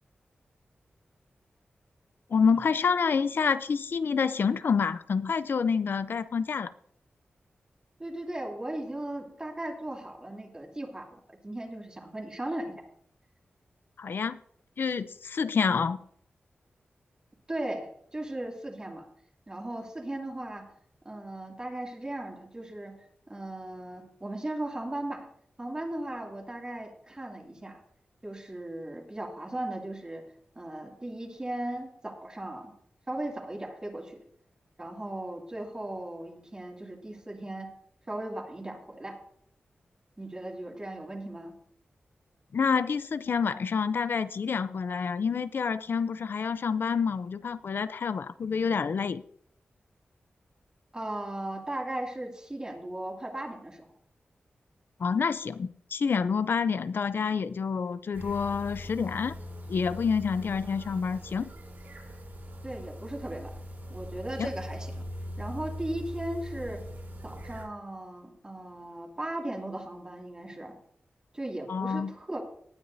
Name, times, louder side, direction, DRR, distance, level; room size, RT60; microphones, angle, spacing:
voice 1, 2.3-6.7 14.0-14.4 14.8-16.0 42.5-49.2 55.0-59.3 59.7-61.5 64.4-64.5 71.7-72.1, left 5 dB, 65° left, 14 dB, 0.5 m, -28 dB
voice 2, 8.0-12.7 17.5-19.1 19.5-20.7 21.0-23.0 23.3-25.3 25.6-27.8 28.2-30.3 30.5-32.7 33.1-34.2 34.8-37.7 38.1-39.2 40.2-41.5 50.9-53.9 62.6-63.6 63.9-65.0 65.4-66.8 67.2-70.7 71.3-72.4, right 1 dB, 20° right, 0 dB, 2.5 m, -37 dB
sound 1, 58.1-67.6, equal, 65° right, 5.3 m, -41 dB
18.0 x 9.5 x 2.7 m, 0.64 s
wide cardioid pair, 105°, 4 cm